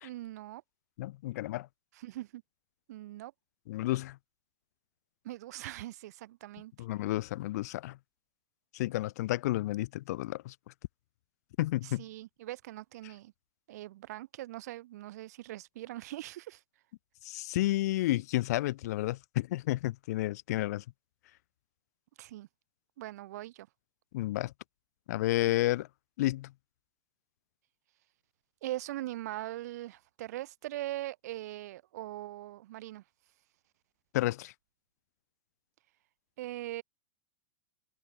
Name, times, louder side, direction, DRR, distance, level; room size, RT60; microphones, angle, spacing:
voice 1, 0.0-0.6 1.9-2.4 2.9-3.3 5.2-6.7 11.8-13.3 13.7-16.6 22.2-22.5 23.0-23.7 28.6-33.0 36.4-36.8, right 15 dB, 65° right, 1.3 m, -41 dB
voice 2, 1.0-1.7 3.7-4.2 6.8-8.0 8.7-10.5 11.6-12.0 17.2-20.8 24.1-24.5 25.1-25.9 26.2-26.5 34.1-34.5, left 16 dB, 60° left, 0.5 m, -31 dB
supercardioid pair, 155°, 10 cm